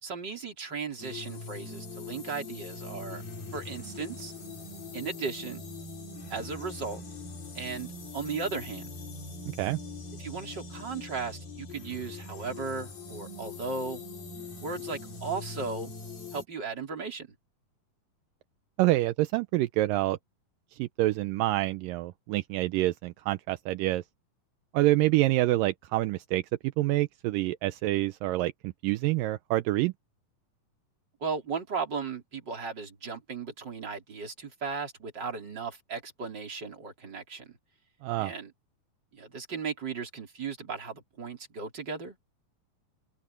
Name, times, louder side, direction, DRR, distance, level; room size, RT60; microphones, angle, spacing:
voice 1, 0.0-3.2 3.5-4.3 4.9-5.7 6.3-7.0 7.5-8.9 10.2-14.0 14.6-15.9 16.3-17.3 31.2-37.6 38.2-38.5 39.1-42.2, right 5 dB, 30° right, 4.3 m, -36 dB
sound 1, 1.0-16.4, left 3 dB, 75° left, 7.2 m, -42 dB
voice 2, 18.8-20.2 20.8-24.0 24.7-26.4 26.8-29.9 38.0-38.3, right 17 dB, 80° right, 2.3 m, -27 dB
open air
omnidirectional pair, 4.2 m